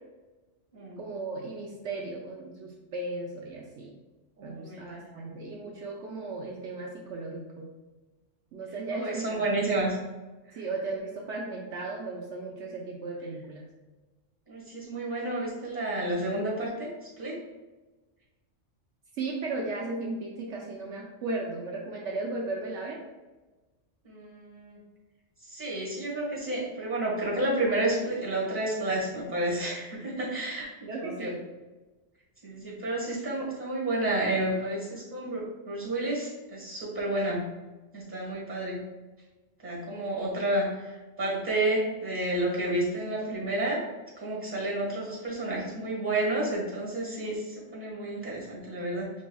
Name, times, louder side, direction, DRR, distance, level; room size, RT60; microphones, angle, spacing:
voice 1, 1.0-3.9 4.4-7.7 8.5-9.5 10.5-13.6 19.1-23.0 30.9-31.4, right 3 dB, 70° right, -1 dB, 0.9 m, -36 dB
voice 2, 4.4-5.0 8.9-10.0 14.5-16.9 17.2-17.4 24.0-24.8 25.5-31.4 32.4-37.5 37.9-38.8 39.6-40.9 41.2-43.8 44.2-49.1, right 1 dB, 10° right, -4 dB, 1.4 m, -30 dB
5.2 x 3.4 x 2.3 m, 1.2 s
omnidirectional pair, 1.3 m